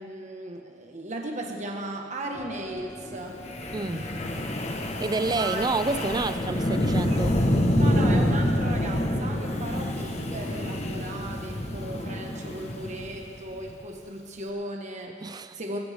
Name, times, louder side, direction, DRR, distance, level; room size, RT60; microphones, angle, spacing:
voice 1, 0.0-3.4 5.3-5.7 6.4-6.5 7.0-7.3 7.7-15.8, right 1 dB, 40° right, 1 dB, 1.6 m, -36 dB
sound 1, 2.3-11.3, left 1 dB, 15° left, 1.0 m, -44 dB
Wind, 3.4-13.7, left 1 dB, 35° left, 1.3 m, -27 dB
voice 2, 3.7-4.1 5.0-7.5 15.2-15.6, right 3 dB, 20° right, 13 dB, 0.5 m, -29 dB
20.0 x 15.5 x 3.7 m, 2.2 s
head